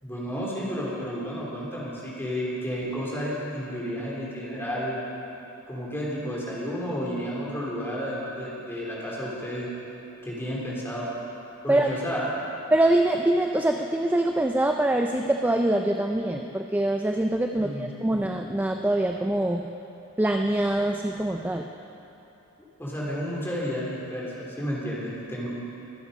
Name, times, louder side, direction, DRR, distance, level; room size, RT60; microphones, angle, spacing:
voice 1, 0.0-5.0 5.7-9.7 10.2-11.1 11.6-12.3 17.5-18.2 22.8-25.5, equal, 10° left, -5 dB, 3.1 m, -32 dB
voice 2, 12.7-19.6 20.2-21.7, right 1 dB, 10° right, 3 dB, 0.4 m, -24 dB
23.5 x 8.3 x 5.2 m, 3.0 s
head